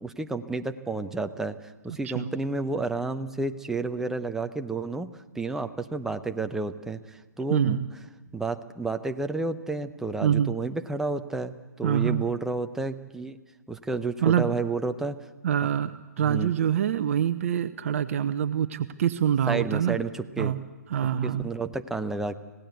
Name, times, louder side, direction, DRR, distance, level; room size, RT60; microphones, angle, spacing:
voice 1, 0.0-1.6 1.8-7.8 8.3-13.4 13.7-15.2 16.2-16.5 19.5-20.5 21.2-22.4, right 3 dB, 5° right, 8 dB, 0.8 m, -31 dB
voice 2, 7.5-7.9 10.2-10.5 11.8-12.2 14.2-14.5 15.4-20.0 20.4-20.6 20.9-21.5, right 9 dB, 50° right, 10 dB, 0.8 m, -25 dB
25.5 x 17.5 x 8.1 m, 1.3 s
figure-of-eight pair, 130°, 10 cm